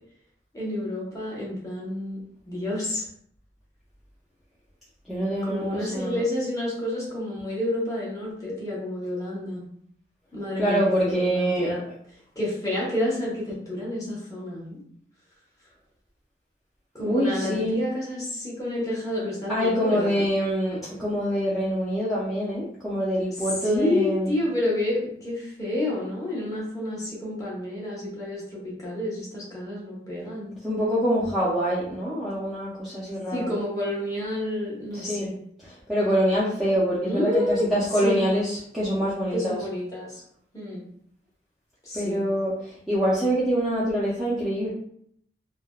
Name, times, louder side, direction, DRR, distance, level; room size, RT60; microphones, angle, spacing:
voice 1, 0.5-3.0 5.4-9.6 10.3-11.8 12.4-14.8 16.9-20.2 23.4-30.5 33.3-35.4 37.0-37.7 38.0-38.3 39.3-40.2 40.5-40.8 41.8-42.2, left 1 dB, 20° left, -6 dB, 0.9 m, -29 dB
voice 2, 5.1-6.2 10.6-11.7 17.0-17.8 19.5-24.4 30.6-33.5 34.9-35.3 35.6-39.6 41.9-44.7, equal, ahead, -10 dB, 0.5 m, -25 dB
3.2 x 2.1 x 2.3 m, 0.66 s
head